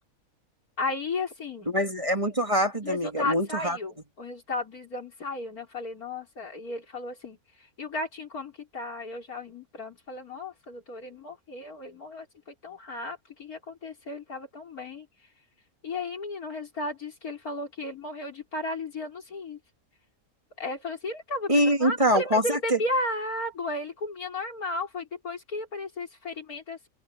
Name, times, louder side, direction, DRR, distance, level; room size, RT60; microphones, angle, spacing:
voice 1, 0.8-1.7 2.8-15.1 15.8-19.6 20.6-26.8, left 2 dB, 85° left, 4.6 m, -34 dB
voice 2, 1.7-3.8 21.5-22.8, equal, 20° right, 2.5 m, -24 dB
open air
omnidirectional pair, 1.5 m